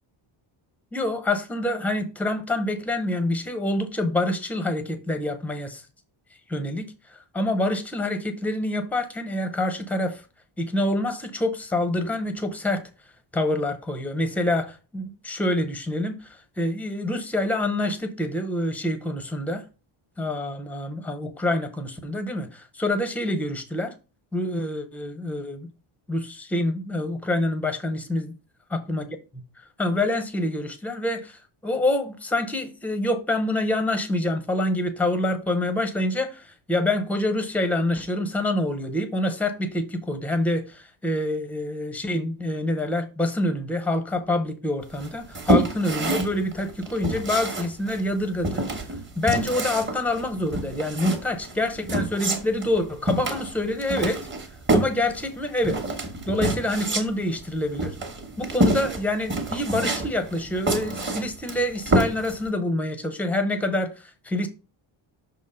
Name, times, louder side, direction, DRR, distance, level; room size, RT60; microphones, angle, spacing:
voice 1, 0.9-5.8 6.5-10.2 10.6-12.8 13.3-19.6 20.2-23.9 24.3-25.7 26.1-28.3 28.7-29.0 29.8-48.6 49.2-54.3 54.7-55.8 56.3-58.0 58.4-64.5, left 1 dB, 5° left, 0.6 m, -26 dB
sound 1, 45.0-62.5, right 1 dB, 25° right, 1.1 m, -27 dB
6.1 x 3.7 x 5.4 m
cardioid pair, 175°, 49 cm